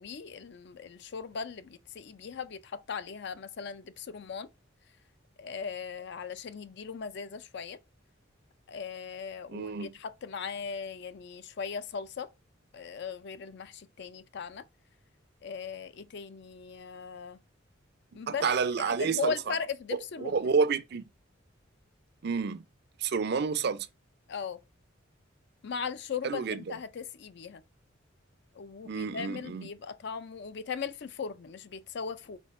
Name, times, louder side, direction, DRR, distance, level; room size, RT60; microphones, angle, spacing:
voice 1, 0.0-4.5 5.4-7.8 8.7-12.3 12.7-14.6 15.4-17.4 18.1-18.4 18.9-20.5 24.3-24.6 25.6-27.6 28.6-32.4, left 6 dB, 60° left, 0.4 m, -38 dB
voice 2, 9.5-9.9 18.3-19.3 19.9-21.0 22.2-22.6 23.0-23.9 26.2-26.7 28.8-29.7, right 5 dB, 55° right, 0.4 m, -29 dB
4.3 x 3.9 x 3.1 m
head